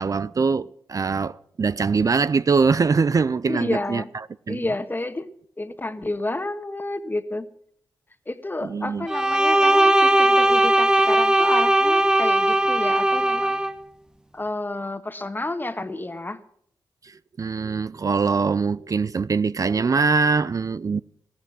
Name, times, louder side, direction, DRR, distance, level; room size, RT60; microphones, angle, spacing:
voice 1, 0.0-4.7 8.6-9.1 17.0-21.0, right 5 dB, 45° right, 0.5 m, -23 dB
voice 2, 3.5-4.1 4.5-5.3 5.6-7.5 8.3-13.6 14.3-16.4, left 2 dB, 25° left, 1.4 m, -30 dB
Bowed string instrument, 9.1-13.7, right 1 dB, 10° right, 0.9 m, -18 dB
14.0 x 13.0 x 6.0 m
supercardioid pair, 45°, 8 cm